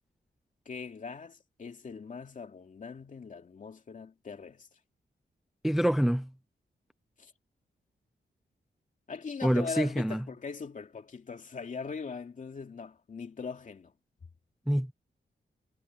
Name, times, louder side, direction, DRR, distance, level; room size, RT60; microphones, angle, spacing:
voice 1, 0.7-4.7 7.2-7.3 9.1-13.9, left 5 dB, 45° left, 2.6 m, -41 dB
voice 2, 5.6-6.3 9.4-10.2 14.7-14.9, equal, ahead, 0.4 m, -26 dB
wide cardioid pair, 180°, 19 cm